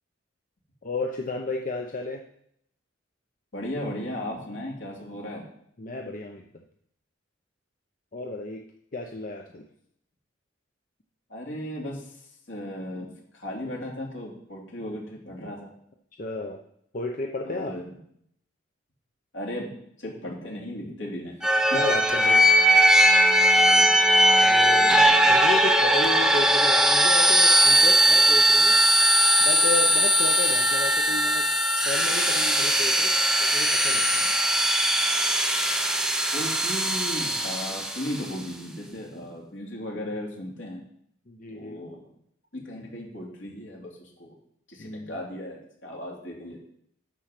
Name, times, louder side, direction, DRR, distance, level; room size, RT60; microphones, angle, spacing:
voice 1, 0.8-2.2 5.8-6.4 8.1-8.6 8.9-9.6 16.2-16.6 16.9-17.8 21.7-22.5 24.4-24.9 25.3-28.8 29.4-31.5 31.8-33.1 33.4-34.3 41.3-41.8 44.8-45.2, left 2 dB, 45° left, 2 dB, 0.8 m, -33 dB
voice 2, 3.5-5.4 11.3-12.1 12.5-13.1 13.3-15.7 17.4-18.0 19.3-19.7 20.0-21.4 23.6-24.0 36.3-40.8 41.5-42.0 42.5-44.3 44.7-46.6, equal, 75° left, -2 dB, 3.1 m, -36 dB
sound 1, 21.4-38.2, equal, 5° right, 0.7 m, -20 dB
13.0 x 4.7 x 5.9 m, 0.70 s
head